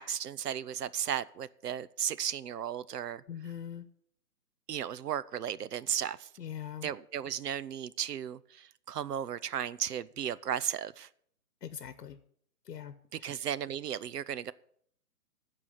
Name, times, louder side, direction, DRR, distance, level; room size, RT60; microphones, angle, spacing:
voice 1, 0.0-3.2 4.7-6.3 6.8-11.1 13.1-14.5, right 9 dB, 80° right, 0.7 m, -35 dB
voice 2, 3.3-3.9 6.4-6.9 11.6-12.2 12.7-12.9 13.2-13.3, left 9 dB, 85° left, 1.0 m, -41 dB
14.0 x 4.8 x 7.3 m
hypercardioid pair, 180°, 47 cm